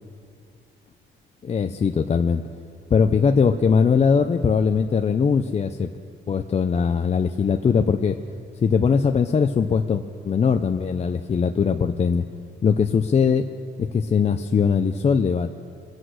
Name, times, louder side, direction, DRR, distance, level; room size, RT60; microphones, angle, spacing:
voice 1, 1.4-2.4 2.9-5.9 6.3-8.2 8.6-12.3 12.6-13.5 13.9-15.6, left 6 dB, 35° left, 6 dB, 0.5 m, -20 dB
23.0 x 8.0 x 6.3 m, 2.3 s
cardioid pair, 90°, 20 cm